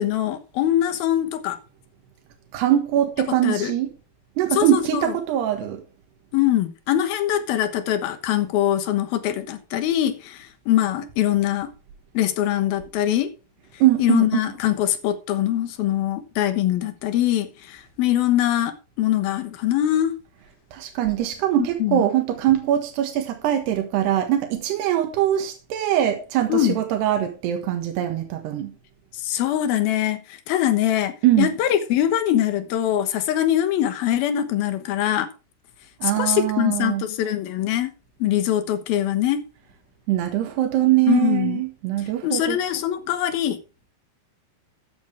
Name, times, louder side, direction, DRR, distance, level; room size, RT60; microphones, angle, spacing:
voice 1, 0.0-1.6 3.4-3.7 4.5-5.1 6.3-11.7 12.1-13.3 14.0-20.1 21.6-22.0 26.5-26.8 29.2-35.3 36.0-37.9 38.2-39.4 41.1-41.6 42.0-43.6, left 12 dB, 70° left, 3.0 m, -23 dB
voice 2, 2.5-3.9 4.4-5.8 13.8-14.3 20.7-28.7 31.2-31.5 36.0-37.0 40.1-42.6, right 12 dB, 85° right, 3.6 m, -22 dB
13.5 x 9.9 x 3.4 m
omnidirectional pair, 4.6 m